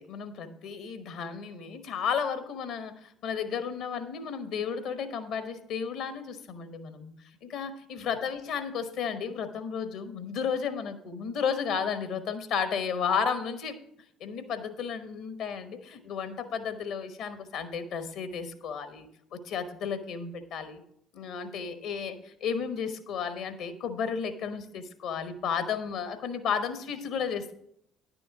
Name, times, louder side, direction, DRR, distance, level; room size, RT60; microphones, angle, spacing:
voice 1, 0.0-7.1 7.4-13.8 14.2-20.8 21.1-27.5, left 6 dB, 60° left, 10 dB, 1.1 m, -33 dB
10.5 x 7.0 x 4.8 m, 0.72 s
figure-of-eight pair, 50°, 0 cm